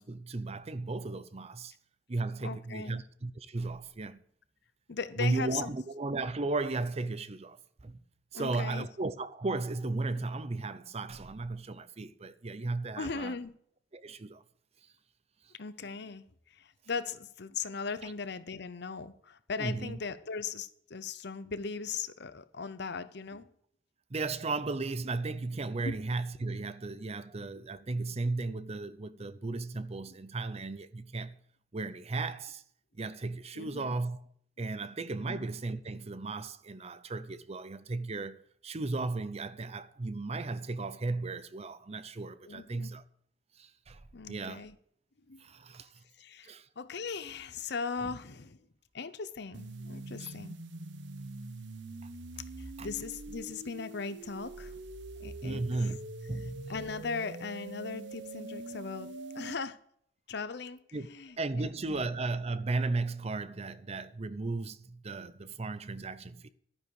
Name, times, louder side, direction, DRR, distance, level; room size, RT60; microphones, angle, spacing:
voice 1, 0.0-1.7 2.1-4.2 5.2-7.6 7.8-8.0 8.3-13.4 13.9-14.4 18.0-18.1 19.6-20.0 24.1-31.4 31.7-32.6 33.0-34.2 34.6-43.0 43.6-44.0 44.3-44.7 45.4-45.9 46.4-46.7 48.0-48.1 50.2-50.3 52.0-52.1 52.8-52.9 55.4-56.0 56.3-56.7 60.9-61.1 61.4-66.5, right 3 dB, 35° right, 0.6 m, -35 dB
voice 2, 2.4-3.0 4.9-5.7 8.3-8.9 13.0-13.5 15.6-16.2 16.5-23.5 25.8-26.0 33.5-34.0 35.2-35.4 42.4-42.9 44.1-44.7 45.3-45.4 46.2-48.6 48.9-50.6 52.6-54.8 55.2-55.9 56.7-59.8 60.3-60.8 61.1-62.1, left 5 dB, 65° left, 0.8 m, -39 dB
sound 1, 49.5-59.5, right 2 dB, 70° right, 0.8 m, -44 dB
12.0 x 10.0 x 4.8 m
head